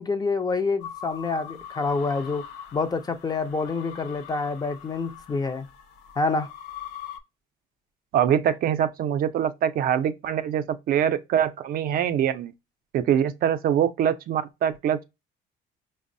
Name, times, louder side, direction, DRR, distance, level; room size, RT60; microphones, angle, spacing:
voice 1, 0.0-2.4 2.7-5.7 6.2-6.5, left 4 dB, 25° left, 0.5 m, -27 dB
sound 1, 0.8-7.2, left 9 dB, 90° left, 0.6 m, -42 dB
voice 2, 8.1-12.5 12.9-15.0, right 9 dB, 60° right, 0.4 m, -24 dB
5.1 x 2.0 x 2.5 m
cardioid pair, 110°, 17 cm